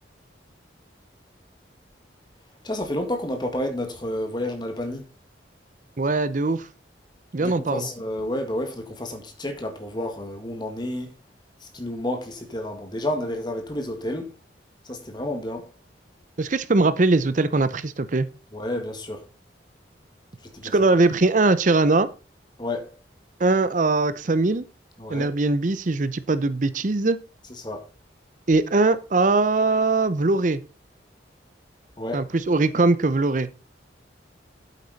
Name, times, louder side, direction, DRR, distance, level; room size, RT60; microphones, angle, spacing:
voice 1, 2.6-5.1 7.4-11.1 11.6-14.3 14.9-15.7 18.5-19.2 20.4-20.7 22.6-22.9 25.0-25.3 27.6-27.9 32.0-32.3, left 1 dB, 25° left, 1.8 m, -30 dB
voice 2, 6.0-6.7 7.3-7.9 16.4-18.3 20.6-22.1 23.4-24.6 25.1-27.2 28.5-30.6 32.1-33.5, right 3 dB, 45° right, 0.6 m, -21 dB
8.4 x 8.3 x 4.1 m
head